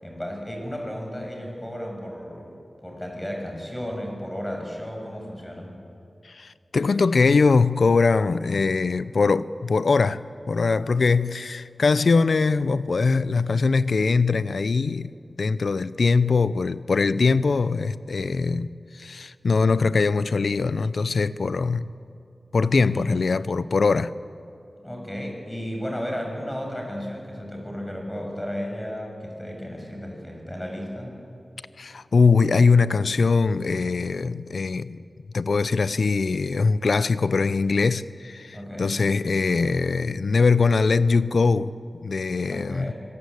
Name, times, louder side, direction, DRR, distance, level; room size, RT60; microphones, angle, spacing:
voice 1, 0.0-2.5 2.8-5.8 22.9-23.4 24.8-31.2 38.5-39.0 42.4-42.9, equal, 10° left, 6.4 m, -34 dB
voice 2, 6.3-10.2 10.5-15.1 15.4-18.7 18.9-21.9 22.5-24.1 31.8-35.0 35.3-41.7 42.0-42.9, left 4 dB, 80° left, 0.6 m, -22 dB
25.5 x 18.5 x 8.3 m
wide cardioid pair, 60°, 0 cm